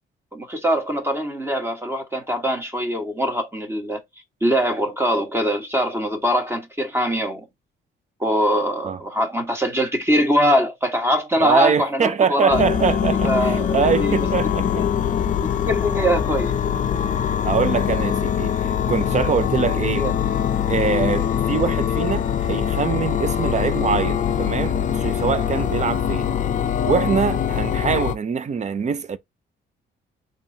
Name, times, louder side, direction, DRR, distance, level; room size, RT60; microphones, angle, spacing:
voice 1, 0.3-4.0 4.4-7.4 8.2-12.6 13.2-14.3 14.8-14.9 15.4-16.5 20.0-20.1, equal, 10° right, 1.5 m, -22 dB
voice 2, 11.4-14.8 17.4-20.1 20.7-26.3 26.8-29.2, right 7 dB, 35° right, 0.6 m, -23 dB
sound 1, 12.5-28.2, left 8 dB, 40° left, 0.5 m, -23 dB
3.8 x 3.1 x 2.7 m
cardioid pair, 90°, 20 cm